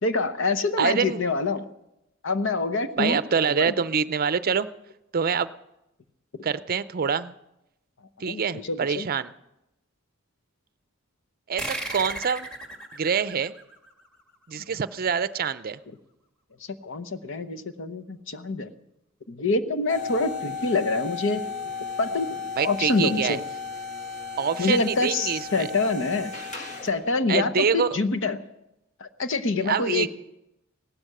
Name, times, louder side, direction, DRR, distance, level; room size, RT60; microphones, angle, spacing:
voice 1, 0.0-1.7 2.2-3.2 3.5-3.7 8.2-9.1 16.8-18.7 19.3-21.5 22.0-23.4 24.6-26.3 26.8-28.4 29.0-30.1, left 3 dB, 65° left, 11 dB, 0.9 m, -26 dB
voice 2, 0.8-1.2 3.0-4.7 5.1-5.5 6.4-7.3 8.2-9.3 11.5-12.5 13.0-13.5 14.5-15.8 22.6-23.4 24.4-25.7 27.3-28.0 29.6-30.1, right 6 dB, 45° right, 15 dB, 0.5 m, -25 dB
sound 1, 11.6-14.6, right 1 dB, 5° left, 1.8 m, -36 dB
sound 2, 19.9-27.1, left 5 dB, 35° left, 1.9 m, -35 dB
17.0 x 12.5 x 6.6 m, 0.88 s
head